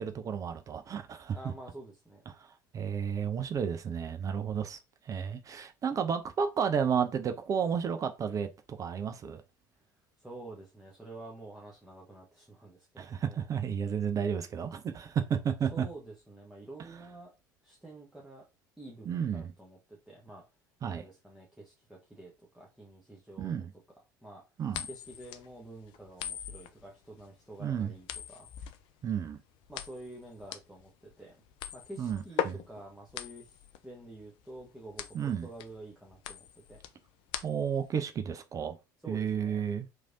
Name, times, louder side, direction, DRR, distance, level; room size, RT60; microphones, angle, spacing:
voice 1, 0.0-1.4 2.3-2.5 2.7-4.8 5.1-9.4 13.0-15.9 16.8-17.0 19.0-19.5 20.8-21.0 23.4-23.7 24.6-24.9 27.6-27.9 29.0-29.4 32.0-32.6 35.1-35.5 37.4-38.8 39.1-39.9, right 7 dB, 30° right, 0.4 m, -32 dB
voice 2, 1.3-2.2 10.2-13.5 15.7-17.3 17.6-18.5 18.8-20.4 20.9-23.7 24.2-24.4 24.9-28.5 29.7-31.3 31.7-36.8 39.0-39.7, right 2 dB, 5° right, 0.9 m, -48 dB
sound 1, 24.7-37.9, left 10 dB, 55° left, 0.4 m, -41 dB
3.1 x 2.6 x 2.5 m
figure-of-eight pair, 65°, 11 cm